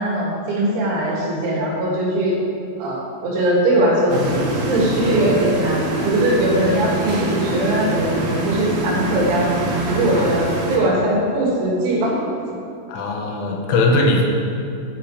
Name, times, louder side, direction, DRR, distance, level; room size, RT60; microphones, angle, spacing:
voice 1, 0.0-2.4 2.8-4.2 4.7-9.5 9.9-12.2, right 1 dB, 90° right, -4 dB, 5.5 m, -20 dB
sound 1, 4.1-10.8, right 1 dB, 65° right, 1.7 m, -24 dB
voice 2, 12.9-14.3, left 2 dB, 75° left, 0 dB, 3.6 m, -20 dB
13.5 x 9.4 x 5.1 m, 2.8 s
omnidirectional pair, 6.0 m